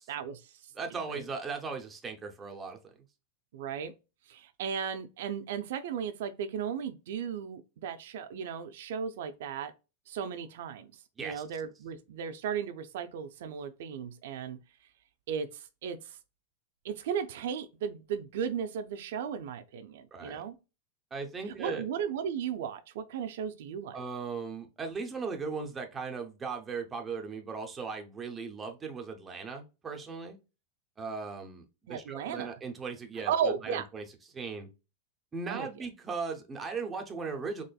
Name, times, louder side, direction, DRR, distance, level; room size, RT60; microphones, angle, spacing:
voice 1, 0.1-0.7 1.1-1.2 3.5-3.9 4.3-9.7 10.1-14.6 15.3-16.2 16.8-20.5 21.5-24.0 31.9-32.5 33.3-33.9 35.5-35.7, right 7 dB, 65° right, 0.4 m, -35 dB
voice 2, 0.7-2.9 11.2-11.4 20.1-20.4 21.1-21.8 23.9-30.4 31.0-33.3 33.6-34.0 34.3-34.7 35.3-37.6, right 4 dB, 15° right, 0.6 m, -38 dB
4.1 x 3.0 x 2.3 m
supercardioid pair, 165°, 0 cm